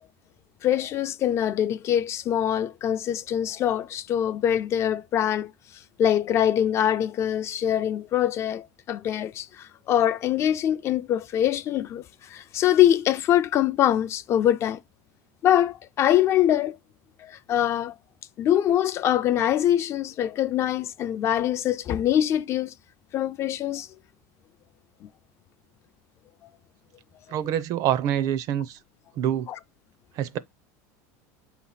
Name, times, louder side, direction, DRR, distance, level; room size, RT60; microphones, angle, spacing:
voice 1, 0.6-5.5 6.0-14.8 15.4-16.8 17.2-17.9 18.4-22.7 23.1-23.9 25.0-25.1, left 11 dB, 30° left, 0.3 m, -23 dB
voice 2, 27.3-28.8 29.2-29.5 30.1-30.4, right 10 dB, 45° right, 0.5 m, -26 dB
7.8 x 2.9 x 5.6 m
supercardioid pair, 150°, 9 cm